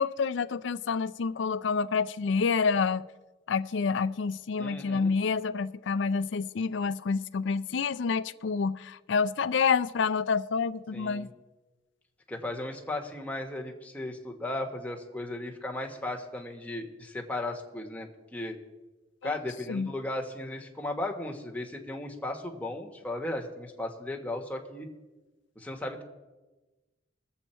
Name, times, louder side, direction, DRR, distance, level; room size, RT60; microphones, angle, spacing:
voice 1, 0.0-3.1 3.5-11.3 19.2-19.4 19.7-19.9, left 5 dB, 65° left, 0.4 m, -28 dB
voice 2, 4.6-5.1 10.9-11.3 12.3-18.6 19.2-24.9 25.5-26.0, left 1 dB, 10° left, 1.3 m, -36 dB
21.0 x 7.8 x 4.4 m
head